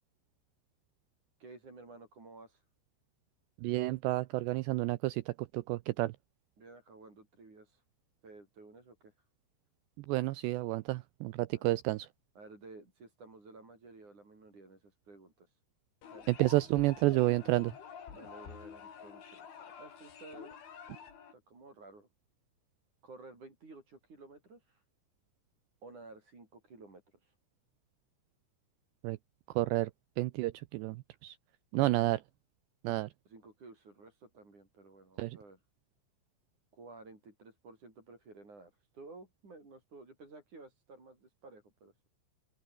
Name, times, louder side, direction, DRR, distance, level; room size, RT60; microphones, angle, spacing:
voice 1, 1.4-2.6 6.6-7.8 8.2-9.1 11.5-11.7 12.4-15.6 16.1-16.3 18.1-20.6 21.0-22.1 23.0-24.8 25.8-27.3 31.7-32.1 33.3-35.6 36.7-42.1, right 3 dB, 35° right, 9.1 m, -54 dB
voice 2, 3.6-6.1 10.0-12.1 16.3-17.7 29.0-29.2 29.6-29.9 30.2-31.4 31.7-32.2 32.8-33.1 35.2-35.4, right 19 dB, 85° right, 2.4 m, -30 dB
sound 1, 16.0-21.3, left 7 dB, 70° left, 6.7 m, -49 dB
open air
omnidirectional pair, 5.8 m